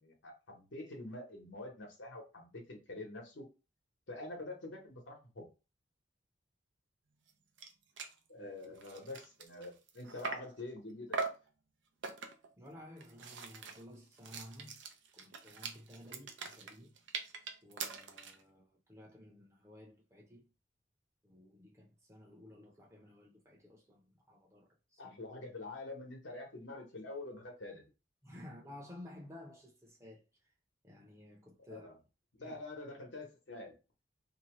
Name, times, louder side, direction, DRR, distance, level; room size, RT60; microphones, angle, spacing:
voice 1, 0.0-3.5 4.1-5.5 8.3-11.2 25.0-27.9 31.7-32.0 32.3-33.7, left 2 dB, 80° left, 1.1 m, -46 dB
sound 1, 7.3-7.4 7.6-7.7 8.0-8.2 8.6-10.6 11.1-11.5 12.0-12.5 13.0-18.4, right 4 dB, 75° right, 0.5 m, -42 dB
voice 2, 12.6-14.9 15.1-17.0 17.6-20.5 21.2-25.2 28.2-30.2 30.8-31.9 32.4-32.6, left 1 dB, 15° right, 0.7 m, -54 dB
2.7 x 2.2 x 3.0 m
head